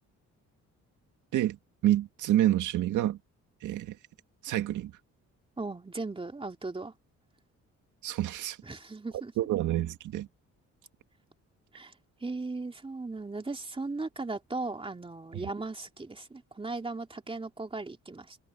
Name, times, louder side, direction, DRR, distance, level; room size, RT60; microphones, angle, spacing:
voice 1, 1.8-3.2 3.6-3.9 4.4-4.9 8.0-8.6 9.4-10.3, right 13 dB, 80° right, 2.2 m, -27 dB
voice 2, 5.6-6.9 8.6-9.3 11.7-11.9 12.2-18.4, right 3 dB, 20° right, 2.7 m, -37 dB
cardioid pair, 90°, 30 cm